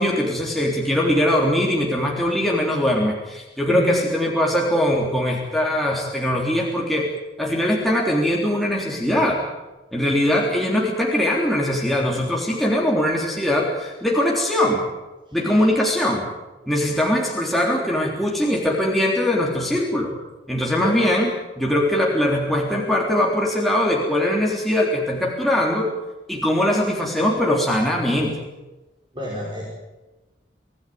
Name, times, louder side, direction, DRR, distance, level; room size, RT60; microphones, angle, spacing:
voice 1, 0.0-7.1 7.4-9.4 9.9-14.9 15.3-16.3 16.7-20.1 20.5-21.3 21.6-25.9 26.3-28.3, left 1 dB, ahead, -2 dB, 3.5 m, -21 dB
voice 2, 3.7-4.0 15.5-15.6 20.8-21.0 29.1-29.7, right 1 dB, 25° right, -4 dB, 5.4 m, -28 dB
25.5 x 16.0 x 9.4 m, 1.1 s
head